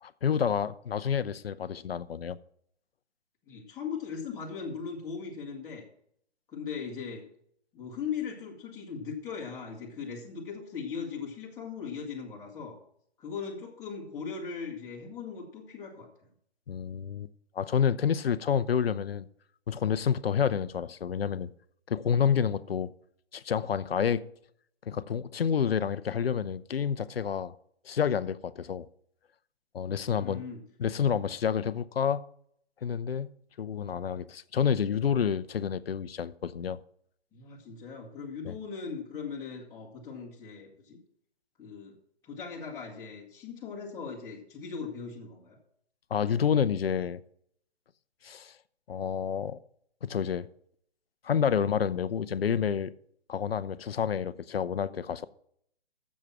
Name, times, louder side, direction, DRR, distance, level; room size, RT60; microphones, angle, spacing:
voice 1, 0.0-2.4 16.7-17.3 17.5-19.3 19.7-21.5 21.9-22.9 23.3-24.2 24.9-27.5 27.8-28.9 29.7-30.4 30.8-32.2 32.8-33.3 33.6-36.8 38.4-38.6 46.1-47.2 48.2-48.6 48.9-49.6 50.0-50.5 51.2-52.9 53.3-55.3, left 7 dB, 65° left, 0.7 m, -29 dB
voice 2, 3.5-5.8 6.5-7.3 7.7-12.8 13.2-16.1 30.1-30.6 37.3-41.0 41.6-42.0 42.2-45.6, left 6 dB, 10° left, 1.7 m, -39 dB
10.5 x 7.4 x 6.1 m
figure-of-eight pair, 145°, 32 cm